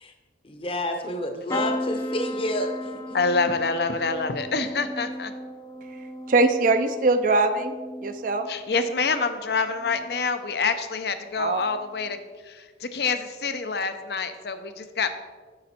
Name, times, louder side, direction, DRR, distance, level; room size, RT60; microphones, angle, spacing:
voice 1, 0.4-3.2, equal, 30° left, 5 dB, 0.8 m, -29 dB
sound 1, 1.5-9.3 9.8-10.3 11.6-11.8 12.0-12.1, left 1 dB, 15° left, 0.4 m, -36 dB
voice 2, 3.1-5.3 8.5-12.2 12.5-15.1, left 4 dB, 60° left, 10 dB, 0.6 m, -26 dB
voice 3, 6.3-8.5 11.4-11.6, right 3 dB, 45° right, 8 dB, 0.5 m, -22 dB
8.7 x 6.1 x 4.3 m, 1.5 s
head